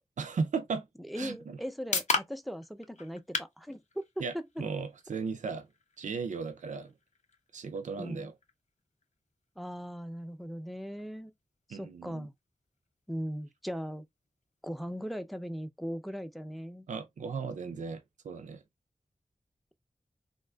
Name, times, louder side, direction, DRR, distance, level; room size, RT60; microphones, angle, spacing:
voice 1, 0.2-0.9 1.2-1.6 4.2-5.7 6.0-6.9 7.5-8.3 11.7-12.3 16.9-18.6, right 5 dB, 85° right, 0.4 m, -36 dB
voice 2, 1.1-4.1 8.0-8.3 9.6-11.3 11.7-12.3 13.1-14.1 14.6-16.9, equal, ahead, 0.5 m, -39 dB
sound 1, 1.2-15.1, left 3 dB, 70° left, 0.6 m, -42 dB
3.5 x 2.4 x 2.2 m
wide cardioid pair, 55°, 12 cm